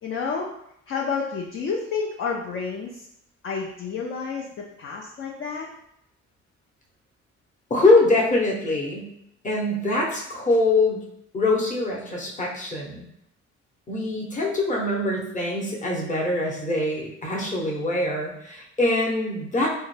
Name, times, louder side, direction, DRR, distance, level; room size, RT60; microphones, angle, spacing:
voice 1, 0.0-0.5 0.9-3.1 3.4-5.7, left 5 dB, 45° left, -2 dB, 0.5 m, -30 dB
voice 2, 7.7-9.1 9.4-11.0 11.3-13.0 13.9-19.7, left 2 dB, 25° left, -3 dB, 0.9 m, -23 dB
3.6 x 2.2 x 3.2 m, 0.76 s
cardioid pair, 90°, 30 cm